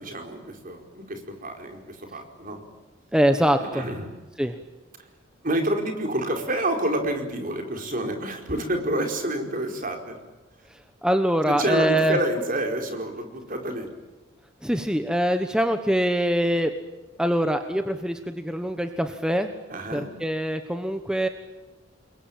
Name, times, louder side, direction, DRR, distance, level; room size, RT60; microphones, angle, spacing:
voice 1, 0.0-2.6 3.7-4.1 5.4-10.2 11.5-13.9 19.7-20.1, right 1 dB, 45° right, 3 dB, 4.8 m, -28 dB
voice 2, 3.1-3.8 4.4-4.5 11.0-12.2 14.6-16.7 17.2-19.5 19.9-21.3, equal, 5° right, 7 dB, 1.2 m, -23 dB
29.5 x 22.5 x 8.9 m, 1.2 s
head